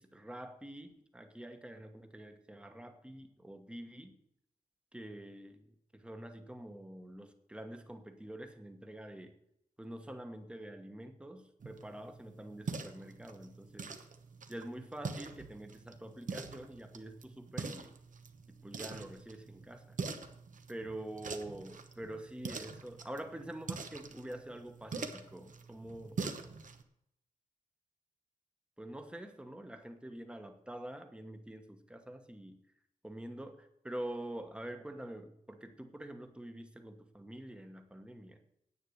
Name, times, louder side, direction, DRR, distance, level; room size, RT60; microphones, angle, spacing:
voice 1, 0.0-4.1 4.9-9.4 9.8-14.0 14.5-17.9 18.5-20.0 20.7-26.2 28.8-32.6 33.0-38.4, right 1 dB, 5° right, 6 dB, 1.1 m, -46 dB
sound 1, 11.6-26.8, right 4 dB, 60° right, 1.1 m, -44 dB
10.0 x 9.0 x 6.4 m, 0.77 s
wide cardioid pair, 155°, 15 cm